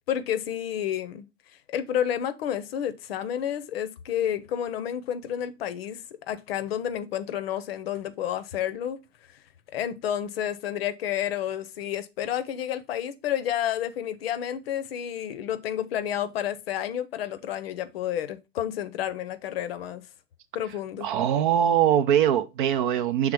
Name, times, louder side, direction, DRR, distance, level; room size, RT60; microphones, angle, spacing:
voice 1, 0.1-1.3 1.7-6.0 6.3-9.0 9.7-20.1 20.5-21.1, left 10 dB, 45° left, 0.7 m, -30 dB
voice 2, 21.0-23.3, right 10 dB, 35° right, 0.6 m, -22 dB
6.4 x 3.5 x 4.9 m
hypercardioid pair, 120°, 42 cm